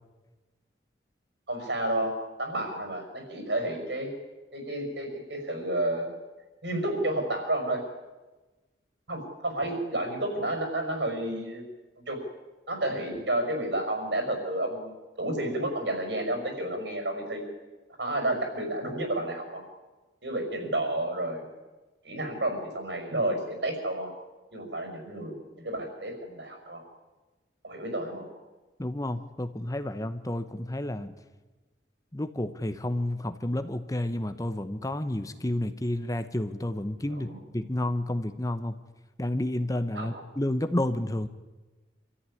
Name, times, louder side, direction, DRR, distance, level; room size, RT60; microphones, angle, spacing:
voice 1, 1.5-4.1 4.5-6.1 6.6-7.8 9.1-11.6 12.1-12.2 12.7-14.9 15.2-17.4 18.0-19.6 20.2-21.5 22.0-24.1 24.5-26.8 27.6-28.3 37.1-37.4 39.9-40.2, right 1 dB, 70° right, 5 dB, 5.8 m, -31 dB
voice 2, 28.8-31.1 32.1-37.3 37.5-38.7 39.2-41.3, left 1 dB, 20° left, 10 dB, 0.9 m, -30 dB
26.0 x 14.0 x 9.9 m, 1.2 s
head